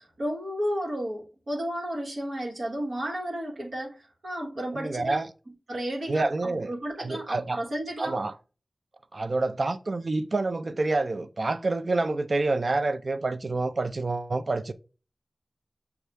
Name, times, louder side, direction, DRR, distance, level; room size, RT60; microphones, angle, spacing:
voice 1, 0.0-3.9 4.2-5.2 5.7-8.2, equal, 75° right, 1.2 m, -32 dB
voice 2, 4.7-5.3 6.1-6.7 7.0-7.6 8.0-8.4 9.1-14.7, right 3 dB, 55° right, 0.4 m, -28 dB
6.5 x 2.3 x 3.1 m
wide cardioid pair, 70°, 0 cm